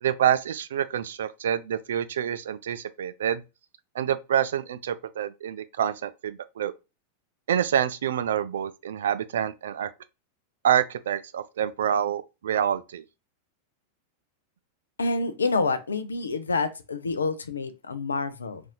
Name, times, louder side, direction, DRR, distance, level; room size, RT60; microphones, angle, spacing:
voice 1, 0.0-3.4 3.9-6.7 7.5-9.9 10.6-13.0, right 9 dB, 60° right, 0.3 m, -27 dB
voice 2, 15.0-18.6, left 3 dB, 75° left, 0.5 m, -28 dB
4.1 x 2.6 x 2.2 m
figure-of-eight pair, 90°, 0 cm